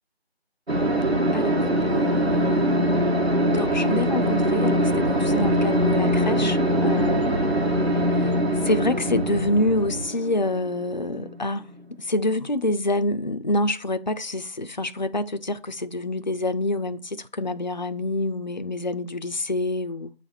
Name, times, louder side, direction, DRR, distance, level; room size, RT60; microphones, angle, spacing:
sound 1, 0.7-11.8, equal, 75° right, 1.9 m, -23 dB
voice 1, 1.3-7.4 7.9-8.3 8.6-11.7 12.0-20.1, left 1 dB, 45° left, 0.4 m, -27 dB
sound 2, 4.8-10.1, right 2 dB, 40° right, 0.7 m, -33 dB
8.3 x 4.1 x 6.0 m
figure-of-eight pair, 165°, 32 cm